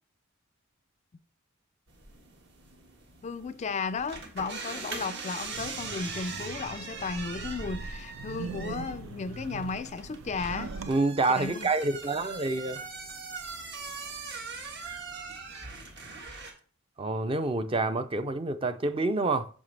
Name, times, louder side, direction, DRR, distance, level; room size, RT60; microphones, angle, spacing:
sound 1, 1.9-16.5, right 4 dB, 55° right, 1.6 m, -41 dB
voice 1, 3.2-10.8 11.3-11.7, left 4 dB, 35° left, 0.4 m, -35 dB
Wind, 5.4-10.9, right 4 dB, 75° right, 0.6 m, -41 dB
voice 2, 10.9-12.9 17.0-19.5, right 3 dB, 25° right, 0.5 m, -27 dB
8.9 x 6.4 x 3.3 m
head